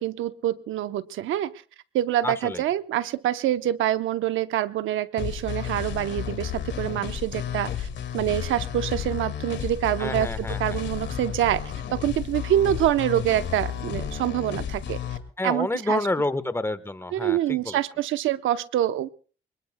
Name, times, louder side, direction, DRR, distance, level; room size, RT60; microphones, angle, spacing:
voice 1, 0.0-1.5 1.9-7.9 8.1-11.6 11.9-15.0 15.4-16.1 17.1-19.1, right 12 dB, 80° right, 12 dB, 0.8 m, -26 dB
voice 2, 2.2-2.6 10.0-10.8 15.4-17.8, left 2 dB, 10° left, 13 dB, 1.2 m, -29 dB
sound 1, 5.2-15.2, left 9 dB, 65° left, 2.0 m, -32 dB
25.0 x 20.5 x 2.2 m, 0.39 s
cardioid pair, 90°, 20 cm